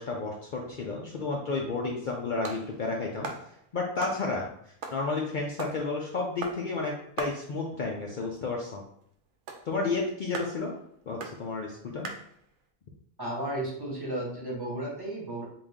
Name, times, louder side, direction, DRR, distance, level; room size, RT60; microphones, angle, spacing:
voice 1, 0.0-3.3 3.7-4.5 4.9-8.8 9.7-10.7 11.1-12.1, left 3 dB, 90° left, -1 dB, 0.4 m, -31 dB
sound 1, 2.0-12.7, right 4 dB, 65° right, 0.8 m, -42 dB
voice 2, 13.2-15.4, right 1 dB, 20° right, -5 dB, 0.9 m, -33 dB
3.8 x 2.5 x 3.5 m, 0.68 s
omnidirectional pair, 1.4 m